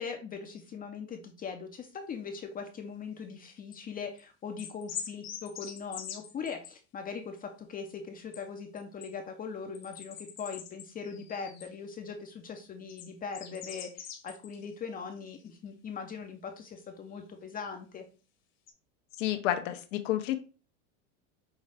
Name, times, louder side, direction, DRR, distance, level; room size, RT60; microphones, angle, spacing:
voice 1, 0.0-18.0, left 5 dB, 25° left, 4 dB, 0.5 m, -40 dB
sound 1, 3.1-3.8 4.2-4.3 4.6-6.7 8.3-8.4 8.8-9.1 9.7-11.7 12.9-14.7 15.0-15.5 17.2-17.3 18.7-18.8, left 8 dB, 45° left, 1.0 m, -44 dB
voice 2, 19.2-20.4, left 13 dB, 75° left, 8 dB, 0.7 m, -30 dB
5.5 x 2.4 x 3.3 m, 0.34 s
supercardioid pair, 120°, 38 cm